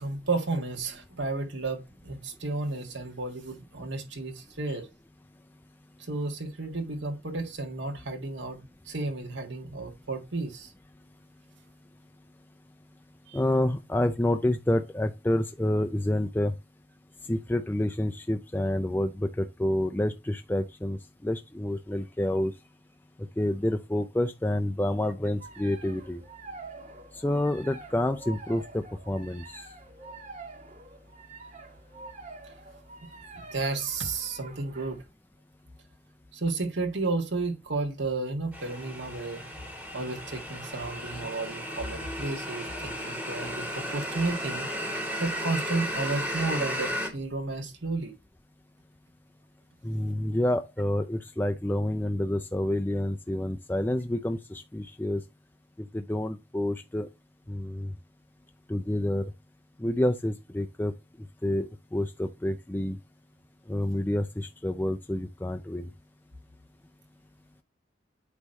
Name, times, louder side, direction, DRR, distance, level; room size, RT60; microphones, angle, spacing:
voice 1, 0.0-4.9 6.0-10.7 13.3-13.4 33.3-35.0 36.3-39.5 39.9-44.7 45.2-48.1, right 3 dB, 80° right, 1.7 m, -32 dB
voice 2, 13.3-16.5 17.3-22.5 23.4-26.2 27.1-29.6 49.8-55.2 55.9-57.1 57.5-57.9 58.7-59.3 59.8-60.9 61.4-63.0 63.7-65.9, left 1 dB, 10° left, 0.4 m, -28 dB
sound 1, 25.4-35.0, right 3 dB, 40° right, 1.7 m, -46 dB
sound 2, 38.5-47.1, equal, 5° right, 1.9 m, -34 dB
8.3 x 3.1 x 5.3 m
head